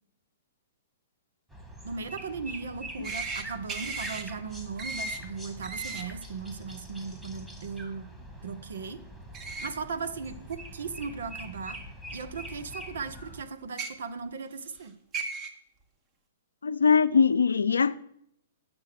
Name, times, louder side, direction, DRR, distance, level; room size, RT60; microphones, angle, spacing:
sound 1, 1.5-13.4, right 1 dB, 5° right, 1.7 m, -44 dB
voice 1, 1.8-8.1 8.4-9.0 9.6-11.8 12.1-14.9, right 5 dB, 70° right, 0.9 m, -37 dB
sound 2, 3.0-3.4 3.7-4.2 4.8-5.2 5.6-6.0 9.3-9.7 10.5-10.6 11.8-11.9 13.6-13.9 14.8-14.9 15.1-15.5, right 3 dB, 30° right, 1.2 m, -35 dB
voice 2, 16.6-18.0, left 5 dB, 85° left, 0.4 m, -22 dB
8.8 x 6.2 x 5.9 m
hypercardioid pair, 120°, 0 cm